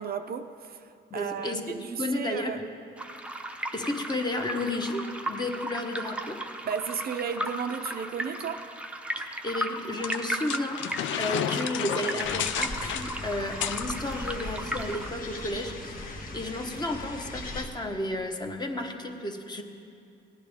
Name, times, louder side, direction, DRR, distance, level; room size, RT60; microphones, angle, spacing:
voice 1, 0.0-2.7 6.6-8.7, right 7 dB, 50° right, 0.5 m, -34 dB
voice 2, 1.1-2.6 3.7-6.4 9.2-19.6, left 1 dB, 20° left, 1.1 m, -32 dB
sound 1, 3.0-15.1, right 1 dB, 5° right, 0.7 m, -36 dB
sound 2, 10.0-13.9, left 10 dB, 75° left, 0.5 m, -32 dB
sound 3, 12.2-17.7, left 2 dB, 45° left, 1.3 m, -39 dB
17.0 x 10.5 x 3.5 m
cardioid pair, 90°, 20 cm